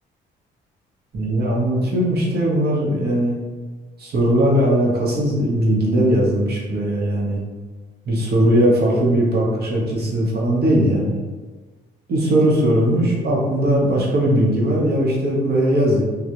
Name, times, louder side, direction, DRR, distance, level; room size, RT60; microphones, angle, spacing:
voice 1, 1.1-3.4 4.0-7.4 8.0-11.2 12.1-16.0, right 1 dB, 55° right, -3 dB, 0.7 m, -19 dB
2.3 x 2.0 x 2.8 m, 1.3 s
cardioid pair, 90°, 20 cm